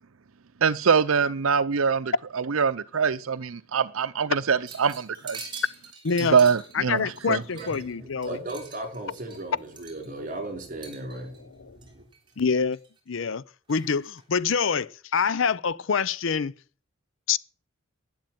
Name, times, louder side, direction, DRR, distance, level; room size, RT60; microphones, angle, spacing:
voice 1, 0.6-5.4 6.3-7.4, right 6 dB, 85° right, 0.6 m, -23 dB
sound 1, 4.7-7.9 8.2-10.3 10.8-11.4 11.8-12.3 12.7-13.2 13.7-14.2, right 4 dB, 25° right, 3.5 m, -44 dB
voice 2, 6.0-6.4 6.7-8.4 11.4-11.8 12.4-12.8 13.1-13.4 13.7-16.5 17.3-17.4, left 6 dB, 70° left, 0.6 m, -26 dB
voice 3, 7.5-11.5 11.7-12.0, right 2 dB, 40° right, 5.0 m, -37 dB
12.0 x 10.5 x 9.2 m
head